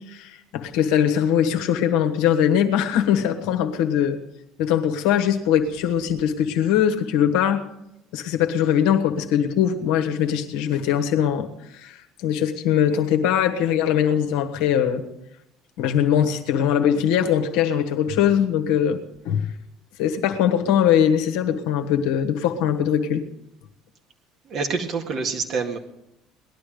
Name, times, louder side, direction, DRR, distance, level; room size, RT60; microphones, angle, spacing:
voice 1, 0.1-4.2 4.6-7.6 8.1-15.1 15.8-19.0 19.2-19.5 20.0-23.2, left 9 dB, 70° left, 5 dB, 1.3 m, -21 dB
voice 2, 24.5-25.8, right 4 dB, 50° right, 4 dB, 2.0 m, -26 dB
19.0 x 11.5 x 5.0 m, 0.86 s
hypercardioid pair, 60°, 0 cm